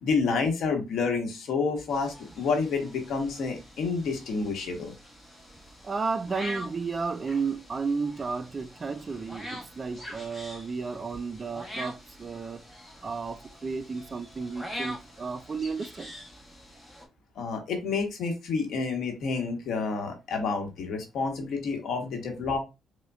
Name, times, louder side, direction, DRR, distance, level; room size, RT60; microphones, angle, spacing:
voice 1, 0.0-4.9 17.4-22.6, left 4 dB, 75° left, 1.0 m, -29 dB
sound 1, 1.9-17.0, equal, 10° left, 1.0 m, -44 dB
voice 2, 5.8-12.6 13.0-16.1, right 4 dB, 35° right, 0.3 m, -33 dB
4.9 x 2.1 x 2.3 m
cardioid pair, 90°, 0 cm